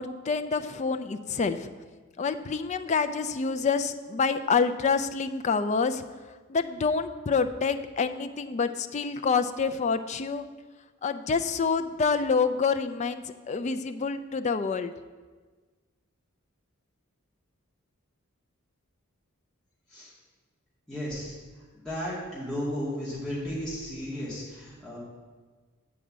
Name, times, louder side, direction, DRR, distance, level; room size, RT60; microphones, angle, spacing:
voice 1, 0.0-1.7 2.2-6.0 6.5-10.5 11.0-14.9, left 5 dB, 35° left, 9 dB, 0.4 m, -27 dB
voice 2, 20.9-21.4 21.7-25.0, equal, 5° left, -10 dB, 2.1 m, -34 dB
8.1 x 4.8 x 7.3 m, 1.4 s
head